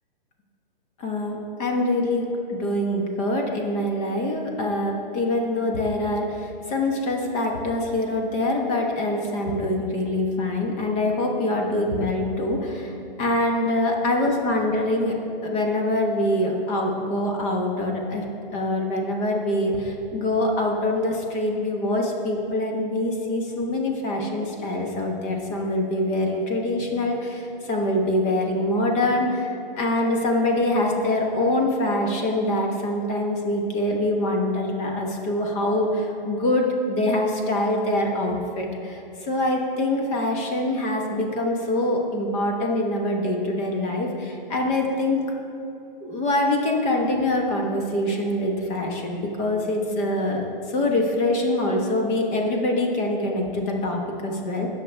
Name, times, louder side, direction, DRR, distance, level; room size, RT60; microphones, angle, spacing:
voice 1, 1.0-12.9 13.2-15.1 15.4-18.2 18.5-45.2 46.0-54.7, left 1 dB, 25° left, 1 dB, 1.3 m, -24 dB
18.0 x 6.6 x 3.5 m, 2.7 s
hypercardioid pair, 145°, 29 cm